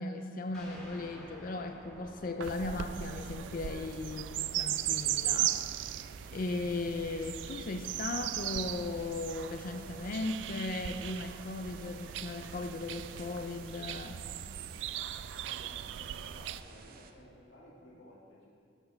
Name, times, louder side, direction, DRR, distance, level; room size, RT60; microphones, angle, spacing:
voice 1, 0.0-5.6 6.3-14.2, left 3 dB, 50° left, 7 dB, 0.4 m, -37 dB
sound 1, 0.5-9.7, equal, ahead, 2.2 m, -56 dB
sound 2, 0.7-17.1, right 3 dB, 55° right, 0.6 m, -55 dB
sound 3, 2.4-16.6, right 12 dB, 85° right, 0.3 m, -38 dB
voice 2, 15.4-18.5, equal, 85° left, -5 dB, 1.7 m, -56 dB
12.5 x 4.5 x 5.8 m, 2.3 s
head